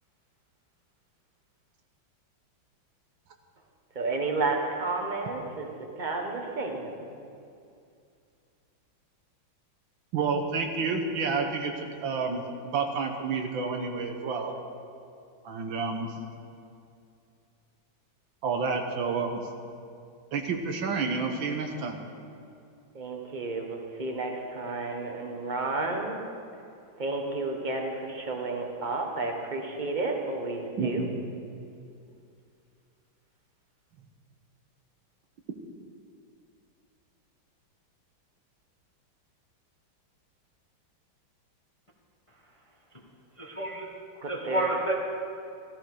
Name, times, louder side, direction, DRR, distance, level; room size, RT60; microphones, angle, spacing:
voice 1, 3.9-5.7 6.0-7.1 22.9-26.2 27.0-31.0 44.1-44.7, right 3 dB, 25° right, 2 dB, 1.3 m, -31 dB
voice 2, 10.1-14.5 15.4-16.1 18.4-19.4 20.3-22.0 30.8-31.2, right 4 dB, 75° right, 4 dB, 1.8 m, -29 dB
voice 3, 43.4-43.9 44.3-44.9, right 1 dB, 20° left, -1 dB, 1.0 m, -29 dB
14.5 x 14.5 x 4.9 m, 2.5 s
omnidirectional pair, 2.2 m